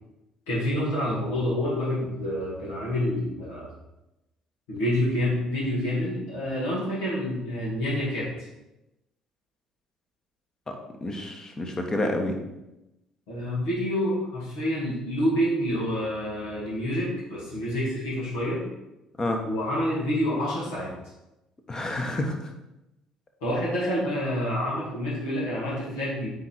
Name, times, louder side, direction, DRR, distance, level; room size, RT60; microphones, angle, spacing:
voice 1, 0.5-3.7 4.7-8.3 13.3-18.7 19.4-20.9 23.4-26.3, equal, 65° left, -7 dB, 2.4 m, -28 dB
voice 2, 10.7-12.4 19.2-19.4 21.7-22.5, left 1 dB, 25° left, 3 dB, 1.4 m, -29 dB
9.4 x 3.7 x 4.5 m, 0.93 s
figure-of-eight pair, 50°, 2 cm